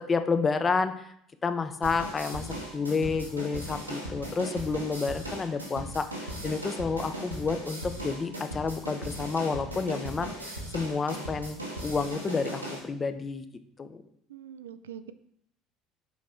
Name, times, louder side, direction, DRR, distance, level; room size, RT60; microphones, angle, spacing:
voice 1, 0.1-1.1 1.4-2.5 2.7-11.6 11.8-13.4 13.8-14.0, left 4 dB, 25° left, 9 dB, 0.6 m, -30 dB
sound 1, 1.8-12.8, right 1 dB, 90° right, 1.1 m, -38 dB
voice 2, 14.3-15.1, right 9 dB, 75° right, 13 dB, 0.3 m, -43 dB
6.2 x 4.2 x 3.6 m, 0.72 s
figure-of-eight pair, 60°, 0 cm